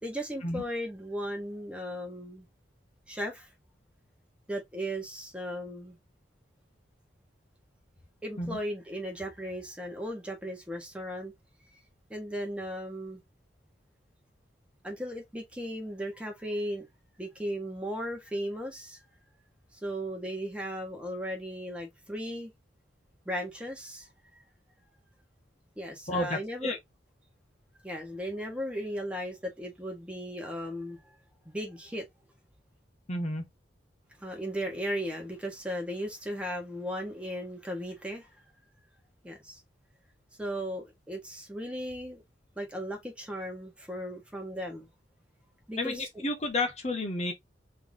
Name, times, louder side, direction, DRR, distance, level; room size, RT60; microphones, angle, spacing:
voice 1, 0.0-2.5 3.1-3.5 4.5-6.0 8.2-11.3 12.1-13.2 14.8-16.9 17.2-19.0 19.8-22.5 23.2-24.1 24.3-24.4 25.8-26.8 27.8-31.0 31.4-32.0 34.2-38.3 39.2-39.6 40.4-42.2 42.6-44.9 45.7-46.1, equal, 5° right, 1.4 m, -36 dB
voice 2, 26.1-26.8 33.1-33.5 45.8-47.3, left 2 dB, 35° left, 0.8 m, -31 dB
3.8 x 3.2 x 3.7 m
head